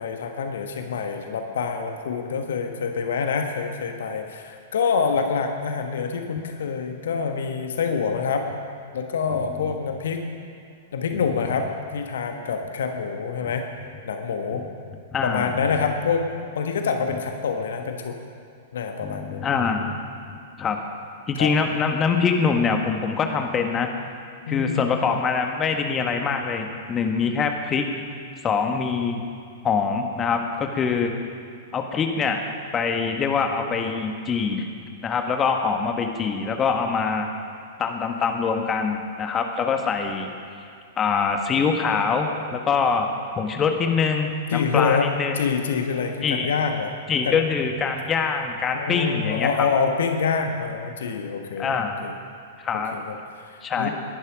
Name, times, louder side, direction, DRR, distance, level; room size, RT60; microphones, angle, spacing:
voice 1, 0.0-8.5 8.9-10.3 10.9-13.7 14.0-14.6 15.2-18.2 18.7-19.4 21.3-21.5 24.5-24.9 44.5-45.1 45.3-46.9 47.2-47.4 48.7-52.1 52.9-53.2 53.4-53.9, left 5 dB, 60° left, 5 dB, 1.3 m, -26 dB
voice 2, 9.3-9.7 13.4-13.5 14.5-14.7 15.1-15.6 19.0-20.0 20.6-20.8 21.3-23.9 24.5-27.9 28.4-29.2 29.6-31.1 31.7-32.4 32.7-34.7 35.0-37.3 37.8-40.3 41.0-45.4 46.2-46.5 47.1-49.5 51.6-52.0 52.6-52.9 53.6-53.9, left 5 dB, 20° left, 4 dB, 1.4 m, -24 dB
20.0 x 11.5 x 5.1 m, 2.4 s
figure-of-eight pair, 100°, 0 cm